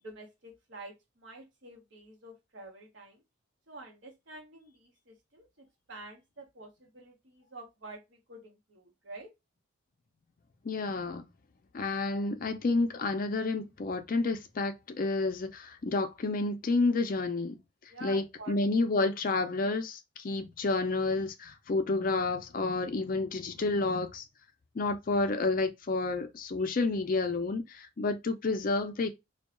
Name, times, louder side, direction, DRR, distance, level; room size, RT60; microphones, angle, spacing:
voice 1, 0.0-3.2 3.7-9.3 17.9-18.5, right 2 dB, 60° right, 1.0 m, -48 dB
voice 2, 10.6-11.2 11.7-17.6 18.0-24.2 24.7-29.1, left 3 dB, 40° left, 0.4 m, -30 dB
2.7 x 2.2 x 2.4 m
head